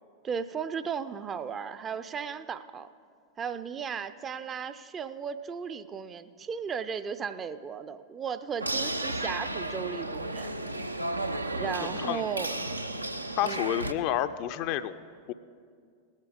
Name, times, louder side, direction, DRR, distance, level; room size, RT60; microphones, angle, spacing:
voice 1, 0.2-2.9 3.4-10.5 11.5-12.5 13.4-13.6, right 6 dB, 25° right, 12 dB, 0.4 m, -35 dB
sound 1, 8.6-13.9, right 1 dB, 85° right, 0.5 m, -33 dB
voice 2, 13.4-15.0 15.3-15.4, left 11 dB, 45° left, 12 dB, 0.4 m, -29 dB
18.0 x 8.2 x 5.0 m, 2.2 s
figure-of-eight pair, 90°, 0 cm